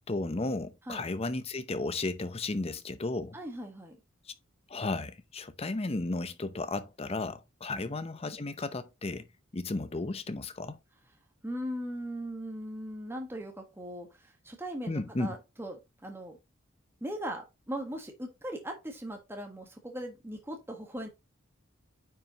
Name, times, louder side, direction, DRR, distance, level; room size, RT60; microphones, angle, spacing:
voice 1, 0.1-3.4 4.7-9.3 9.5-10.8 14.9-15.4, left 2 dB, 30° left, 0.7 m, -34 dB
voice 2, 3.3-4.0 7.7-7.9 11.4-15.8 16.0-16.4 17.0-21.1, equal, 10° right, 1.4 m, -39 dB
9.3 x 5.4 x 2.9 m
head